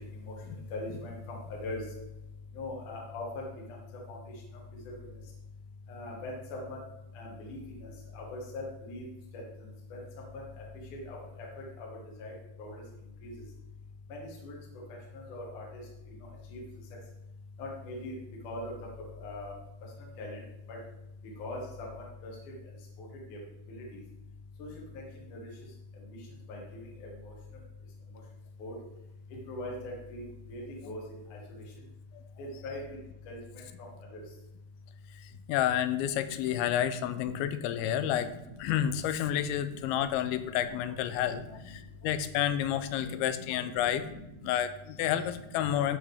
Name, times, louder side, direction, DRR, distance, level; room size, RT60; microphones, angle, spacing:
voice 1, 0.7-1.8 2.5-3.4 3.7-3.8 4.1-4.2 4.8-5.0 5.9-6.8 7.1-9.0 9.3-9.4 9.9-10.0 10.3-10.4 11.0-11.9 12.2-12.3 12.6-12.8 13.2-13.3 14.1-14.6 15.1-15.8 16.5-16.6 17.6-18.2 18.4-19.5 20.2-20.4 20.7-20.8 21.4-22.3 23.0-23.4 23.7-23.8 24.6-24.7 25.3-25.4 26.5-27.3 28.6-28.7 29.5-31.0 31.3-31.4 32.4-32.8 33.3-33.6 34.1-34.2 36.1-37.3 37.6-38.2 38.6-38.7 39.1-39.4 39.7-40.9 41.2-41.6 43.0-44.5, left 2 dB, 60° left, -2 dB, 2.8 m, -41 dB
voice 2, 35.5-38.3 38.6-44.0 44.4-46.0, left 10 dB, 80° left, 11 dB, 2.4 m, -30 dB
14.0 x 5.1 x 3.4 m, 0.88 s
omnidirectional pair, 4.5 m